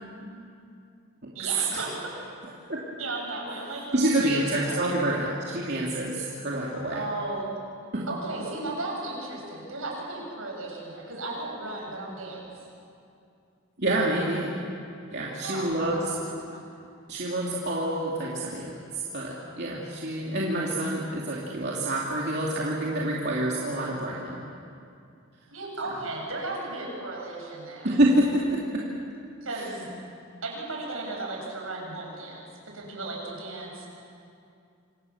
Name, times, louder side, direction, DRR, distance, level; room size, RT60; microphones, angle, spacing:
voice 1, 1.3-2.3 3.0-4.8 6.1-6.3 6.9-7.4 8.1-12.5 15.4-16.2 16.5-16.7 25.5-27.9 29.4-29.9 30.4-33.9, right 2 dB, 75° right, -1 dB, 7.7 m, -35 dB
voice 2, 3.9-7.0 7.9-8.1 13.8-14.6 15.1-16.1 17.1-24.4 27.8-28.8 29.5-29.6, right 1 dB, 50° right, -4 dB, 2.9 m, -27 dB
27.5 x 26.5 x 7.3 m, 2.5 s
head